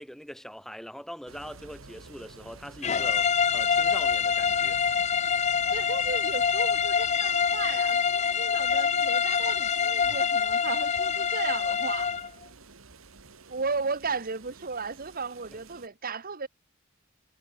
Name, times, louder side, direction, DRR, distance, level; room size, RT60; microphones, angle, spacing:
voice 1, 0.0-4.8 15.5-15.6, equal, ahead, 2.9 m, -42 dB
sound 1, 1.3-15.9, right 3 dB, 70° right, 1.7 m, -50 dB
sound 2, 2.8-12.3, left 6 dB, 35° left, 0.6 m, -25 dB
voice 2, 5.7-12.1 13.5-16.5, right 4 dB, 45° right, 1.4 m, -35 dB
head